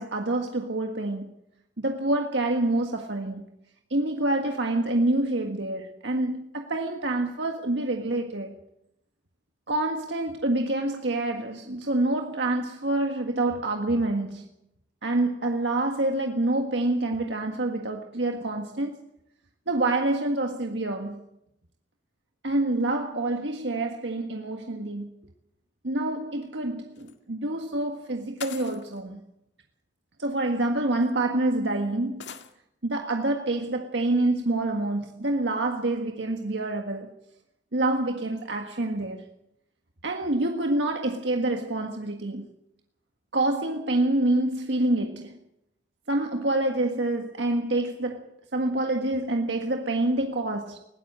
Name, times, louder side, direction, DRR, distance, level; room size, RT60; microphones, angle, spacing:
voice 1, 0.0-1.3 1.8-3.4 3.9-8.6 9.7-14.5 15.0-19.0 19.7-21.2 22.4-25.1 25.8-29.2 30.2-32.3 32.8-37.2 37.7-39.3 40.0-42.5 43.3-45.4 46.1-50.8, right 2 dB, 80° right, 1.7 m, -27 dB
sound 1, 26.9-27.1 28.4-29.0 30.2-30.3 31.0-31.1 32.2-32.5, left 7 dB, 75° left, 1.9 m, -41 dB
20.5 x 17.0 x 7.5 m
head